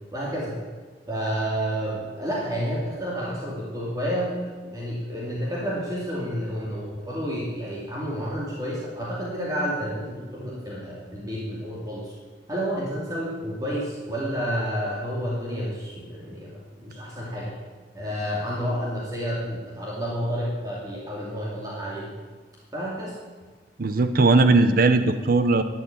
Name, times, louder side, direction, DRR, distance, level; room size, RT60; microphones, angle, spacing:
voice 1, 0.1-0.6 1.1-12.1 12.5-17.5 17.9-22.1 22.7-23.1, equal, 20° right, -5 dB, 2.6 m, -30 dB
voice 2, 23.8-25.6, right 3 dB, 55° right, 10 dB, 0.7 m, -18 dB
12.5 x 8.2 x 9.5 m, 1.4 s
head